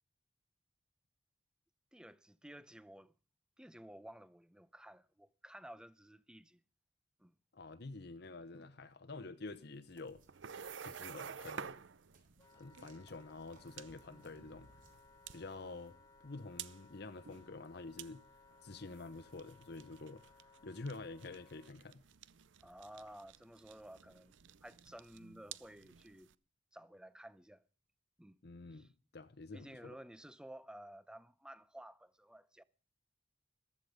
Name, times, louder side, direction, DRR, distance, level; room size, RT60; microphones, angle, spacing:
voice 1, 1.9-3.1 3.6-6.6 7.2-7.3 22.6-24.3 24.6-26.3 26.7-27.6 28.2-28.4 28.7-28.9 29.5-32.6, right 1 dB, 5° right, 0.7 m, -54 dB
voice 2, 7.5-10.2 10.8-11.7 12.5-14.7 15.3-16.0 16.2-18.2 18.6-20.2 20.6-22.0 28.4-30.0, left 3 dB, 60° left, 0.9 m, -48 dB
sound 1, 9.5-15.7, right 2 dB, 50° right, 4.3 m, -69 dB
sound 2, 10.1-26.3, right 7 dB, 80° right, 0.6 m, -52 dB
Wind instrument woodwind instrument, 12.4-21.7, left 4 dB, 20° left, 1.2 m, -64 dB
15.0 x 13.5 x 5.1 m
head